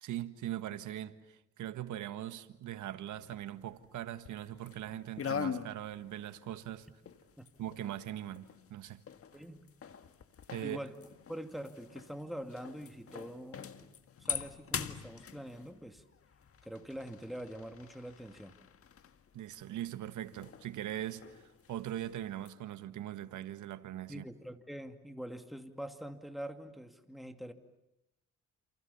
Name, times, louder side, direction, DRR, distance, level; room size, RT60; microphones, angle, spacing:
voice 1, 0.0-6.9 7.6-9.0 10.5-10.8 19.3-21.4 21.7-24.2, right 12 dB, 75° right, 1.7 m, -41 dB
sound 1, 3.1-4.9 5.2-22.5, left 7 dB, 50° left, 1.7 m, -44 dB
voice 2, 9.3-9.7 10.6-11.0 11.3-13.7 14.2-16.0 16.6-18.5 24.1-27.5, equal, ahead, 2.6 m, -44 dB
28.5 x 28.5 x 7.2 m
cardioid pair, 90°, 30 cm